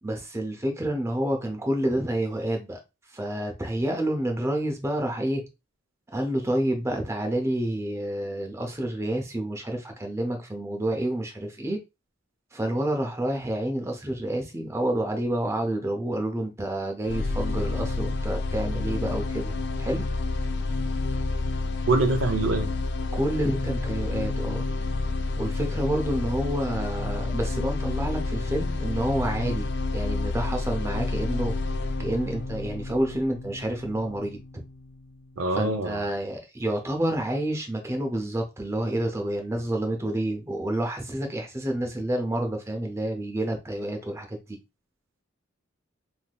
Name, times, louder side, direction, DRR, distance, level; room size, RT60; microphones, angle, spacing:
voice 1, 0.0-2.8 3.1-5.4 6.1-11.8 12.5-20.0 23.2-24.6 25.4-31.6 32.0-34.4 35.5-44.6, right 1 dB, 15° right, 0.6 m, -29 dB
sound 1, 17.0-35.1, left 3 dB, 55° left, 0.3 m, -29 dB
voice 2, 21.9-22.7 35.4-36.0, right 3 dB, 75° right, 0.6 m, -24 dB
3.3 x 2.7 x 2.2 m
head